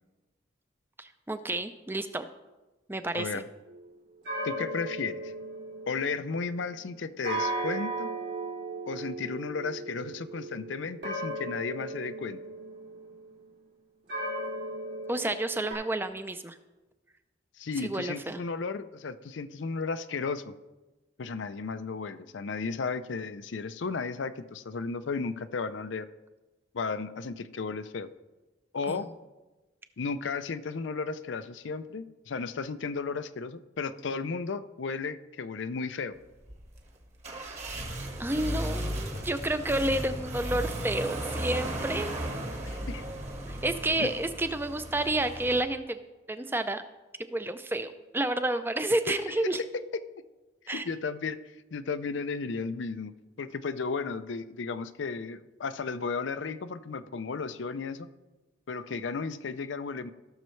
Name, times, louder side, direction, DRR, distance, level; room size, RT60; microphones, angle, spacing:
voice 1, 1.0-2.3 2.9-3.4 15.1-16.6 17.8-18.4 28.9-29.0 38.2-42.1 43.5-46.0 46.3-46.8 47.3-49.6 50.7-50.9, right 1 dB, 10° right, 10 dB, 0.5 m, -30 dB
voice 2, 3.1-3.5 4.4-5.3 5.9-8.1 8.9-12.4 17.6-20.5 21.2-26.1 26.7-28.1 28.7-29.1 30.0-36.2 42.6-43.0 44.0-44.1 50.6-51.4 51.7-53.1 53.4-58.1 58.7-60.1, left 4 dB, 80° left, 12 dB, 0.5 m, -34 dB
sound 1, 3.7-3.9 4.2-6.6 7.2-13.4 14.1-15.7, right 2 dB, 80° right, 3.8 m, -36 dB
sound 2, 36.4-45.6, right 1 dB, 35° right, 1.4 m, -35 dB
16.5 x 6.5 x 3.2 m, 1.1 s
head